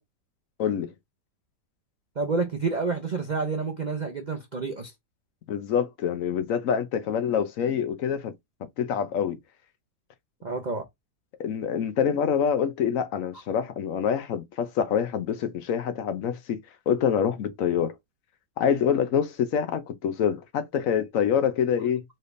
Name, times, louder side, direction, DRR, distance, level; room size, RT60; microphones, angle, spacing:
voice 1, 0.6-0.9 5.5-8.3 8.8-9.4 11.4-16.6 16.9-17.9 18.6-22.0, left 8 dB, 65° left, 1.0 m, -26 dB
voice 2, 2.2-4.9 10.4-10.9, right 4 dB, 60° right, 0.4 m, -29 dB
4.1 x 3.3 x 2.5 m
omnidirectional pair, 1.7 m